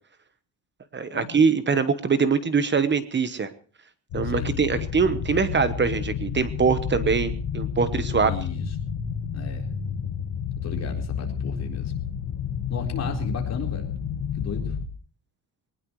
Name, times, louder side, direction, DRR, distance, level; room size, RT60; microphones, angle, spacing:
voice 1, 0.9-3.5 4.1-8.3, right 5 dB, 25° right, 12 dB, 1.0 m, -23 dB
sound 1, 4.1-14.9, left 8 dB, 70° left, 2.0 m, -30 dB
voice 2, 4.2-4.7 8.2-8.7 9.3-9.7 10.6-11.9 12.7-13.9 14.3-14.8, left 4 dB, 35° left, 1 dB, 4.2 m, -34 dB
21.0 x 19.5 x 3.1 m, 0.42 s
cardioid pair, 165°, 42 cm